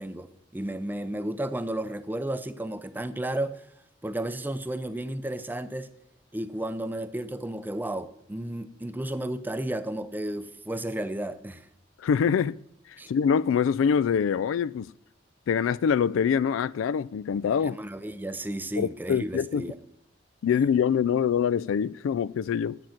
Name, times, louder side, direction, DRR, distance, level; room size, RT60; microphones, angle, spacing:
voice 1, 0.0-3.7 4.0-5.9 6.3-11.7 13.0-13.1 17.6-19.8, right 1 dB, 10° right, 0.5 m, -33 dB
voice 2, 12.0-12.6 13.1-14.9 15.5-17.8 18.8-19.7 20.4-22.8, left 7 dB, 90° left, 0.3 m, -24 dB
10.5 x 7.5 x 5.8 m
head